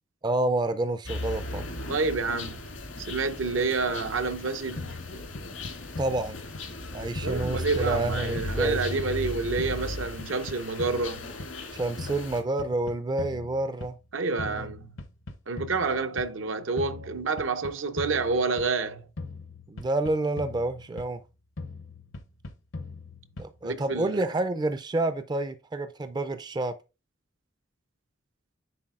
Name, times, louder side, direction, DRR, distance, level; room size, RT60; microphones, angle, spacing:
voice 1, 0.2-1.7 6.0-6.4 6.9-9.0 11.7-14.0 14.4-14.7 19.7-21.2 23.4-26.7, right 2 dB, 20° right, 0.3 m, -29 dB
sound 1, 1.1-12.4, left 1 dB, 90° left, 2.1 m, -36 dB
voice 2, 1.9-2.7 3.0-5.0 7.2-11.3 14.1-15.0 15.5-19.1 23.6-24.3, right 4 dB, 75° right, 0.6 m, -29 dB
sound 2, 4.8-6.9 7.2-9.3 9.6-11.7 12.0-14.1 14.4-16.4 16.8-18.9 19.2-21.3 21.6-23.7, left 3 dB, 70° left, 0.7 m, -41 dB
9.8 x 4.0 x 2.4 m
head